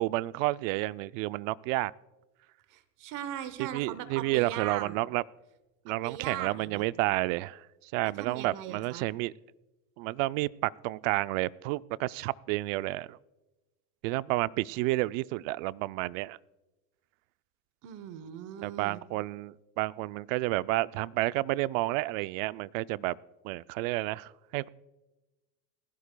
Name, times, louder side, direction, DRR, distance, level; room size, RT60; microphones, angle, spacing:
voice 1, 0.0-1.9 3.6-5.2 5.9-9.3 10.0-13.2 14.0-16.4 18.6-23.2 23.4-24.7, right 19 dB, 70° right, 17 dB, 0.5 m, -30 dB
voice 2, 2.7-5.0 5.9-6.8 8.0-9.1 17.8-19.0, right 10 dB, 50° right, 13 dB, 1.0 m, -39 dB
19.0 x 16.0 x 2.2 m, 1.1 s
cardioid pair, 145°, 40 cm